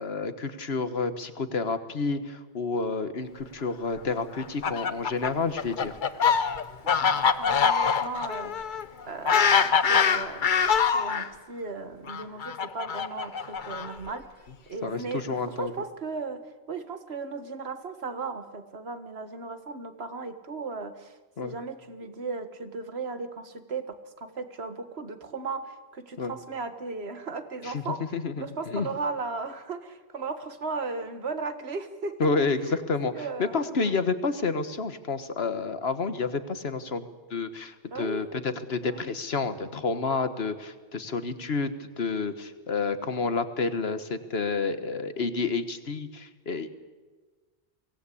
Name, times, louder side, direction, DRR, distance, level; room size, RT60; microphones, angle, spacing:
voice 1, 0.0-6.0 14.8-15.7 21.4-21.6 26.2-26.3 27.6-28.9 32.2-37.0 37.3-46.7, left 4 dB, 65° left, 11 dB, 1.6 m, -29 dB
Fowl, 4.3-11.3 12.1-14.1, left 6 dB, 50° left, 0.9 m, -24 dB
voice 2, 7.0-8.5 9.1-10.5 10.7-14.3 14.7-16.4 16.7-21.1 21.4-23.9 24.2-28.0 28.4-32.2 33.1-34.0 37.9-38.3 38.8-39.1, right 4 dB, 70° right, 9 dB, 1.8 m, -36 dB
24.0 x 18.0 x 8.5 m, 1.3 s
omnidirectional pair, 1.1 m